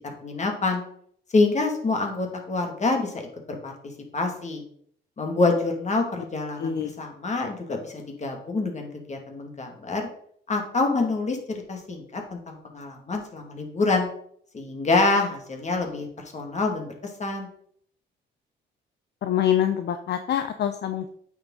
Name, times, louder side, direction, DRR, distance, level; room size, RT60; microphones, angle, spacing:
voice 1, 0.2-0.8 1.3-3.2 3.5-3.7 4.1-4.6 5.2-10.1 10.5-14.1 14.5-16.1 16.3-17.5, left 3 dB, 35° left, 3 dB, 2.2 m, -26 dB
voice 2, 6.6-6.9 19.2-21.1, left 10 dB, 60° left, 8 dB, 0.7 m, -25 dB
8.5 x 6.3 x 3.9 m, 0.63 s
cardioid pair, 90°, 20 cm